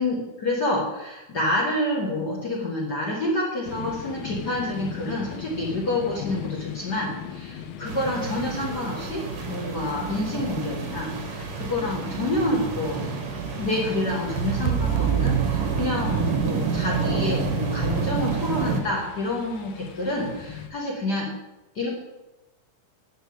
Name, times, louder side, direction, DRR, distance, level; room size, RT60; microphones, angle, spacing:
voice 1, 0.0-9.2 9.5-13.1 13.5-21.3 21.7-22.0, left 1 dB, 55° left, -3 dB, 1.1 m, -28 dB
sound 1, 3.7-20.7, left 8 dB, 90° left, 2.7 m, -41 dB
sound 2, 7.9-18.8, right 4 dB, 65° right, 1.5 m, -29 dB
sound 3, 14.4-16.6, right 10 dB, 85° right, 2.5 m, -26 dB
10.5 x 4.5 x 6.9 m, 1.0 s
omnidirectional pair, 4.2 m